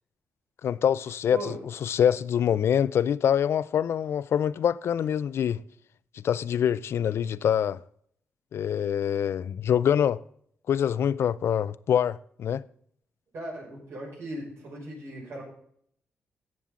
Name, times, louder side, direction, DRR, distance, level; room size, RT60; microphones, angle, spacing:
voice 1, 0.6-5.6 6.2-7.8 8.5-10.2 10.7-12.6, left 9 dB, 70° left, 0.4 m, -25 dB
voice 2, 13.3-15.4, right 1 dB, 80° right, 5.9 m, -38 dB
17.0 x 7.3 x 3.7 m
cardioid pair, 100°, 4 cm